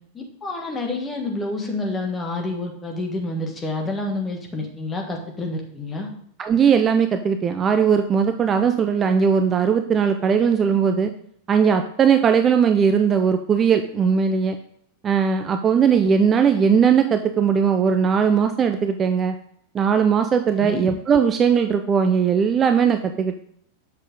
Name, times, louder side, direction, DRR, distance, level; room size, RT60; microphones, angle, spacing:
voice 1, 0.1-6.1 20.6-20.8, left 2 dB, 15° left, 1 dB, 1.6 m, -28 dB
voice 2, 6.4-11.1 11.5-14.6 15.0-19.3 19.7-23.4, right 6 dB, 25° right, 8 dB, 0.5 m, -19 dB
7.6 x 6.3 x 3.6 m, 0.65 s
figure-of-eight pair, 90°, 0 cm